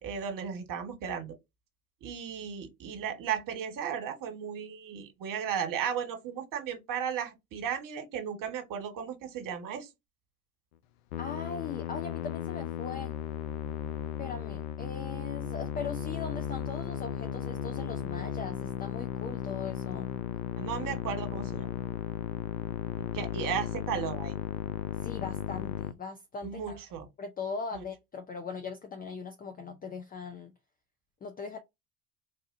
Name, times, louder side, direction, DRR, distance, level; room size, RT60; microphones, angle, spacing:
voice 1, 0.0-1.4 2.0-9.9 20.6-21.7 23.1-24.4 26.4-27.1 27.7-27.8, right 8 dB, 45° right, 1.4 m, -35 dB
Musical instrument, 11.1-25.9, left 10 dB, 65° left, 0.6 m, -35 dB
voice 2, 11.2-13.1 14.2-20.1 25.0-26.8 27.2-30.5 31.2-31.6, left 5 dB, 20° left, 0.5 m, -40 dB
4.2 x 2.4 x 2.6 m
hypercardioid pair, 85°, 44 cm